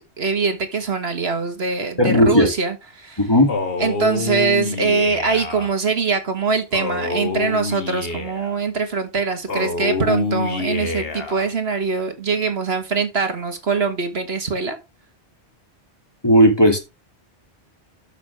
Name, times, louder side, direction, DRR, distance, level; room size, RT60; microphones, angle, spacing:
voice 1, 0.2-3.3 3.8-14.8, right 4 dB, 65° right, 1.8 m, -23 dB
voice 2, 2.0-2.5 3.2-3.5 16.2-16.8, equal, 20° left, 2.7 m, -14 dB
Male speech man speaking, 3.5-5.7 6.7-8.6 9.5-11.5, left 3 dB, 55° left, 1.7 m, -26 dB
13.0 x 6.0 x 3.5 m
omnidirectional pair, 1.2 m